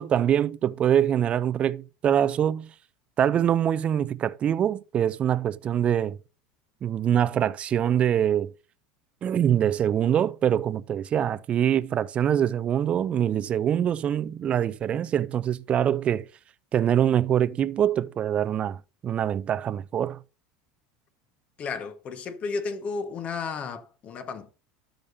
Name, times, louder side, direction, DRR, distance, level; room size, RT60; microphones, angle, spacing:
voice 1, 0.0-2.7 3.2-6.2 6.8-8.5 9.2-16.3 16.7-20.2, right 9 dB, 35° right, 0.5 m, -24 dB
voice 2, 21.6-24.5, left 4 dB, 40° left, 1.4 m, -33 dB
13.0 x 5.2 x 2.7 m
supercardioid pair, 100°, 3 cm